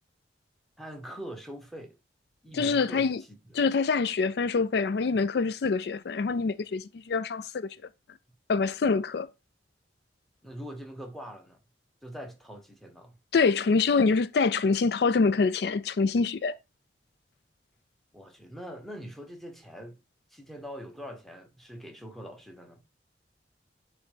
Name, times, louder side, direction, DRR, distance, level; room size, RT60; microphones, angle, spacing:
voice 1, 0.8-2.0 2.4-3.6 10.4-11.6 12.0-13.2 18.1-20.0 20.3-22.8, equal, ahead, 1.1 m, -43 dB
voice 2, 2.5-3.2 3.5-7.8 8.5-9.3 13.3-16.6, left 4 dB, 60° left, 0.4 m, -25 dB
9.2 x 3.2 x 4.9 m
head